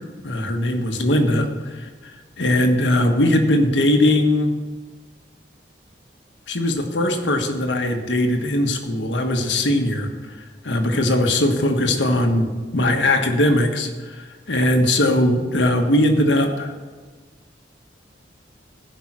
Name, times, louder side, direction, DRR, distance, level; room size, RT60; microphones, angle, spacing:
voice 1, 0.2-4.5 6.5-10.4 10.6-16.7, left 1 dB, 85° left, 4 dB, 1.4 m, -20 dB
16.0 x 5.5 x 6.1 m, 1.4 s
head